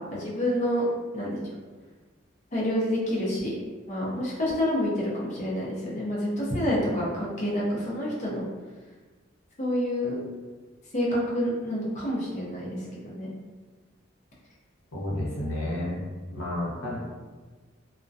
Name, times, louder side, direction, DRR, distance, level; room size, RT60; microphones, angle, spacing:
voice 1, 0.1-0.9 1.1-1.4 2.5-3.5 3.9-8.4 9.6-10.2 10.9-13.3, equal, 35° left, -6 dB, 0.6 m, -28 dB
voice 2, 14.9-16.0 16.3-17.0, left 1 dB, 85° left, -5 dB, 0.8 m, -31 dB
2.3 x 2.1 x 2.5 m, 1.3 s
head